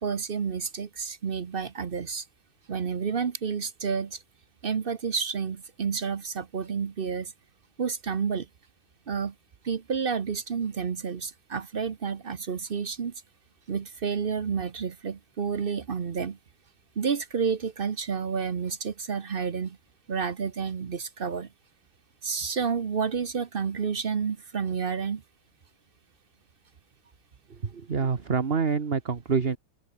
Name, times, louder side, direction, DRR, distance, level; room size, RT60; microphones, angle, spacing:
voice 1, 0.0-2.2 2.7-4.2 4.6-7.3 7.8-8.5 9.1-9.3 9.6-13.1 13.7-16.4 17.0-19.8 20.1-21.5 22.2-25.2, right 6 dB, 50° right, 0.6 m, -30 dB
voice 2, 27.5-29.6, right 5 dB, 35° right, 1.3 m, -27 dB
omnidirectional pair, 2.3 m